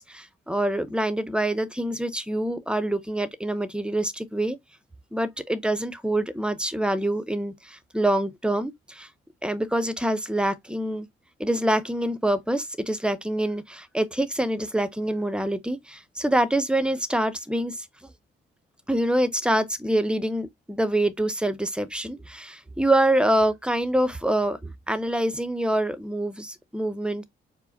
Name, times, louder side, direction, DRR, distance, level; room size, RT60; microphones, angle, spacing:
voice 1, 0.0-4.6 5.1-9.1 9.4-11.1 11.4-18.1 18.9-27.2, right 1 dB, 5° right, 0.7 m, -26 dB
4.6 x 2.1 x 3.9 m
cardioid pair, 90°, 20 cm